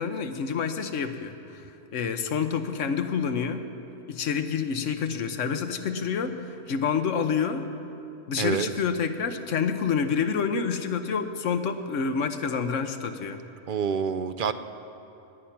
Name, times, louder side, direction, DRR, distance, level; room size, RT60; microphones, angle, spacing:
voice 1, 0.0-3.7 4.1-7.7 8.3-13.4, left 6 dB, 80° left, 8 dB, 1.2 m, -28 dB
voice 2, 8.4-8.7 13.7-14.5, right 7 dB, 55° right, 9 dB, 0.6 m, -27 dB
18.0 x 10.0 x 5.9 m, 3.0 s
omnidirectional pair, 1.3 m